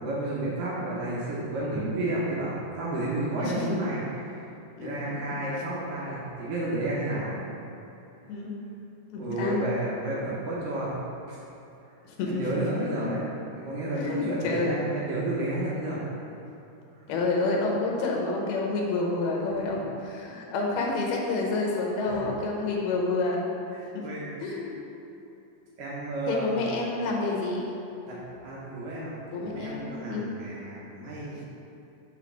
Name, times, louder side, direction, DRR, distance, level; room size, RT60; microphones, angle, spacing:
voice 1, 0.0-4.4 4.8-7.4 9.2-11.0 11.3-11.4 12.3-13.2 13.5-16.0 17.0-17.1 22.1-22.2 23.7-24.6 25.8-26.6 28.0-28.2 28.4-29.1 29.4-31.5, right 1 dB, 75° right, -6 dB, 2.0 m, -31 dB
voice 2, 9.1-9.6 12.2-12.4 14.0-14.7 17.1-23.5 24.4-24.7 26.3-27.7 29.3-30.2, left 3 dB, 70° left, -2 dB, 2.6 m, -28 dB
7.5 x 4.1 x 6.0 m, 2.8 s
omnidirectional pair, 5.2 m